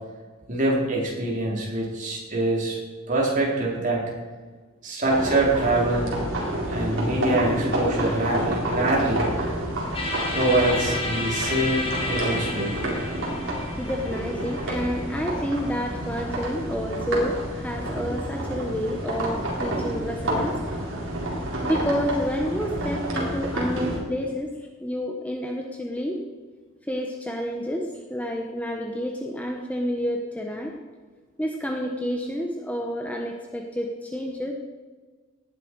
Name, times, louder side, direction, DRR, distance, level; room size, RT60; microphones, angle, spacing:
voice 1, 0.5-2.8 3.1-4.0 4.8-6.1 6.7-9.3 10.3-12.8, right 2 dB, 40° right, -4 dB, 4.2 m, -24 dB
sound 1, 5.1-24.0, right 1 dB, 65° right, 3.9 m, -29 dB
sound 2, 9.9-15.9, left 1 dB, 25° left, 2.2 m, -32 dB
voice 2, 13.8-20.6 21.6-26.2 26.9-30.7 31.4-34.5, equal, 5° left, 1 dB, 1.0 m, -29 dB
18.0 x 10.5 x 4.7 m, 1.4 s
head